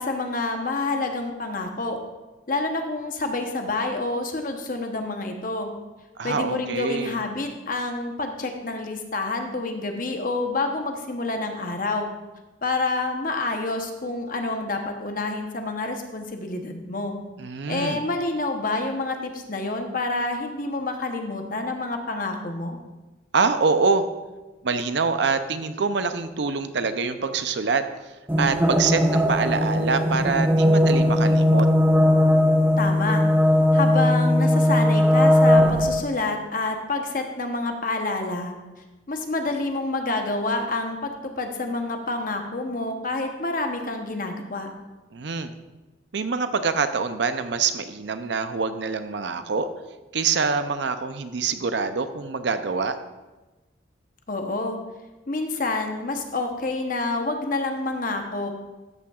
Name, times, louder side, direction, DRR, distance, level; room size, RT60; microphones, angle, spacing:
voice 1, 0.0-2.0 2.5-5.7 6.2-12.1 12.6-17.2 17.7-22.8 32.8-33.2 33.7-38.5 39.1-44.7 54.3-54.8 55.3-58.5, left 2 dB, 45° left, 4 dB, 0.9 m, -28 dB
voice 2, 6.2-7.2 17.4-18.0 23.3-24.0 24.6-27.8 28.4-31.7 45.1-45.5 46.1-49.7 50.1-52.9, right 4 dB, 65° right, 10 dB, 0.5 m, -25 dB
sound 1, 28.3-36.0, left 1 dB, 10° right, 0.6 m, -19 dB
13.0 x 8.6 x 2.4 m, 1.2 s
head